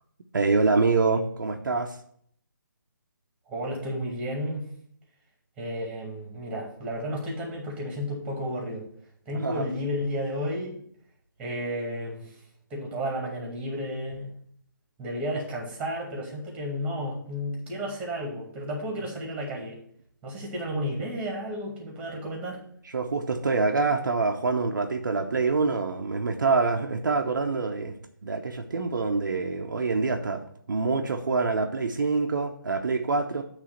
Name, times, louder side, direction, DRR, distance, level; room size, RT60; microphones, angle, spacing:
voice 1, 0.3-2.0 9.3-9.7 22.9-27.9 28.2-33.4, right 4 dB, 60° right, 3 dB, 0.8 m, -26 dB
voice 2, 3.5-4.6 5.6-8.8 9.3-10.8 11.4-12.4 12.7-14.3 15.0-19.8 20.2-22.6, equal, 10° right, -1 dB, 2.1 m, -32 dB
8.5 x 3.4 x 6.5 m, 0.64 s
figure-of-eight pair, 145°, 11 cm